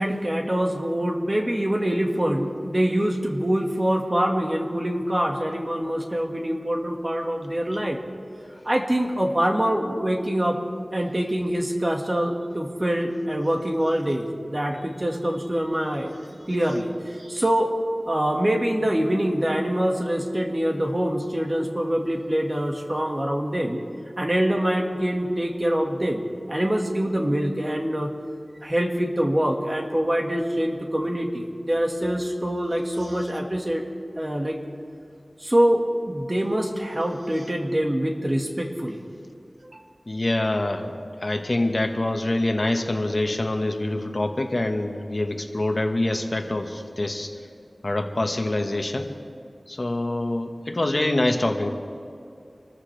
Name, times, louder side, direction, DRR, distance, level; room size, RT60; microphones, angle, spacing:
voice 1, 0.0-8.0 8.6-10.6 10.9-16.2 16.5-17.7 18.1-23.8 24.2-26.2 26.5-28.1 28.6-33.8 34.2-34.6 35.4-39.0 39.6-39.8, equal, 35° right, 2 dB, 1.9 m, -24 dB
voice 2, 40.1-40.9 41.2-47.3 47.8-49.1 49.7-51.7, left 1 dB, 50° left, 4 dB, 1.5 m, -25 dB
26.5 x 14.0 x 3.5 m, 2.5 s
wide cardioid pair, 45°, 0 cm